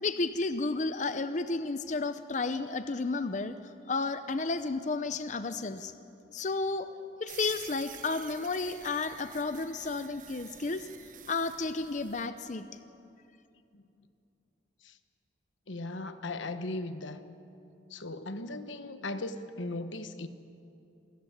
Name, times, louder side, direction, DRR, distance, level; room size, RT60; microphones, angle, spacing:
voice 1, 0.0-5.9 6.3-6.9 7.2-10.9 11.3-12.7, left 3 dB, 40° left, 11 dB, 0.6 m, -32 dB
sound 1, 7.3-12.3, right 10 dB, 45° right, 1.1 m, -49 dB
voice 2, 15.7-17.2 17.9-20.3, left 2 dB, 85° left, 10 dB, 1.2 m, -37 dB
27.0 x 14.5 x 9.9 m, 2.8 s
head